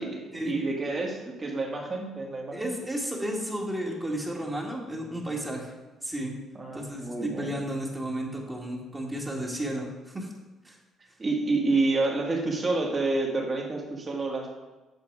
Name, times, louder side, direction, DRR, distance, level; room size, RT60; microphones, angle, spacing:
voice 1, 0.0-2.7 6.6-7.5 11.2-14.6, right 3 dB, 35° right, 0 dB, 2.2 m, -29 dB
voice 2, 2.5-5.7 6.0-6.3 6.7-10.3 10.6-10.8, right 1 dB, 20° right, -2 dB, 2.0 m, -33 dB
8.2 x 6.8 x 4.8 m, 1.2 s
cardioid pair, 90°, 0 cm